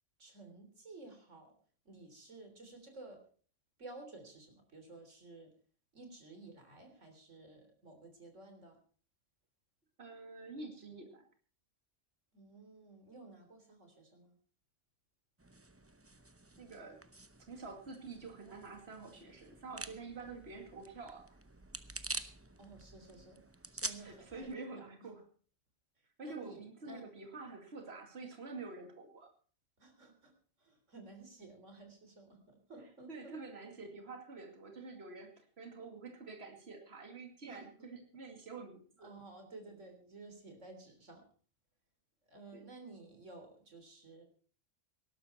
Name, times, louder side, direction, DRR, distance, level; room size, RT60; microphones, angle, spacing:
voice 1, 0.2-1.5 1.9-3.2 3.8-5.5 5.9-8.8 12.3-14.3 22.6-23.4 23.7-24.8 26.2-27.0 29.8-30.3 30.6-33.4 37.5-37.9 39.0-41.2 42.3-44.2, right 2 dB, 90° right, 5 dB, 3.9 m, -53 dB
voice 2, 10.0-11.2 16.6-17.0 17.5-21.4 24.0-25.2 26.2-29.3 33.1-39.1 42.5-42.7, right 3 dB, 60° right, 4 dB, 2.6 m, -48 dB
sound 1, 15.4-24.6, right 2 dB, 15° right, 0.6 m, -48 dB
18.5 x 12.0 x 4.4 m, 0.42 s
omnidirectional pair, 1.2 m